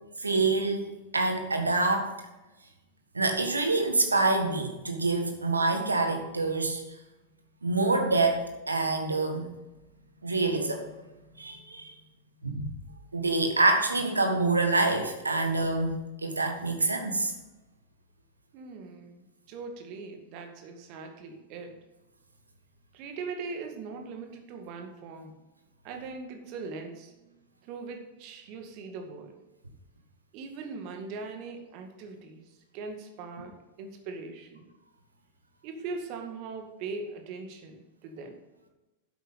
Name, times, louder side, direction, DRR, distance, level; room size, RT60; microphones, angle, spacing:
voice 1, 0.2-2.1 3.1-6.8 7.6-9.5 10.2-10.9 11.4-11.9 12.4-12.7 13.1-17.3, right 3 dB, 80° right, 5 dB, 1.6 m, -26 dB
voice 2, 18.5-21.7 22.9-25.3 25.8-27.1 27.6-29.3 30.3-34.7 35.6-38.4, right 4 dB, 45° right, 4 dB, 1.9 m, -40 dB
10.5 x 8.1 x 4.0 m, 1.1 s
figure-of-eight pair, 90°, 0 cm